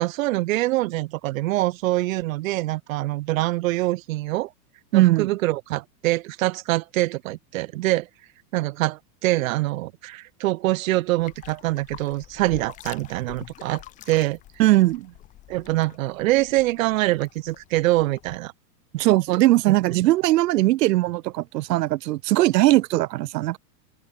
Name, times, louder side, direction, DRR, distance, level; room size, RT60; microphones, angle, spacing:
voice 1, 0.0-4.5 4.9-8.1 8.5-14.4 15.5-18.5 19.7-19.8, right 18 dB, 60° right, 0.7 m, -24 dB
voice 2, 4.9-5.3 14.6-15.1 18.9-23.6, right 17 dB, 90° right, 0.8 m, -19 dB
sound 1, 11.2-18.4, left 14 dB, 15° left, 0.7 m, -46 dB
open air
supercardioid pair, 165°, 47 cm